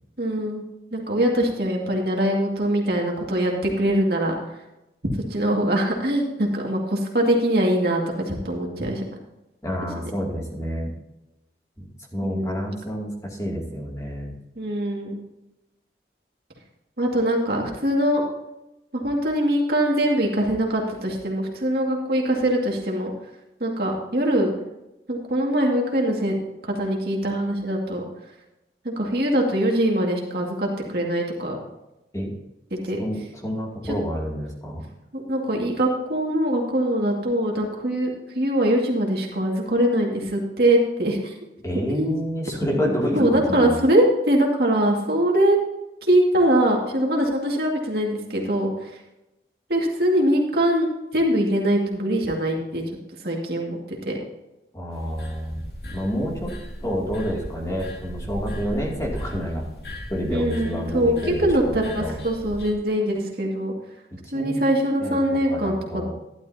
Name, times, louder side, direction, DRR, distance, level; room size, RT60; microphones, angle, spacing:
voice 1, 0.2-0.6 0.9-4.3 5.3-8.0 8.3-9.0 12.2-12.7 14.6-15.2 17.0-18.2 18.9-23.1 23.6-24.5 25.1-26.3 26.6-28.0 28.8-31.6 32.8-33.0 33.8-33.9 35.1-41.3 41.9-42.2 42.8-45.6 46.0-48.9 49.7-52.8 53.2-54.2 60.3-63.7 64.3-66.1, right 1 dB, 60° right, -1 dB, 2.2 m, -22 dB
voice 2, 9.6-10.9 11.8-11.9 12.1-14.3 32.1-32.3 33.0-34.8 41.6-43.8 54.7-59.7 60.1-62.2 64.1-64.6 65.0-65.2 65.5-66.1, equal, 20° left, -2 dB, 2.6 m, -29 dB
sound 1, 54.9-62.7, equal, 65° left, 2.6 m, -36 dB
12.5 x 11.5 x 2.8 m, 0.92 s
head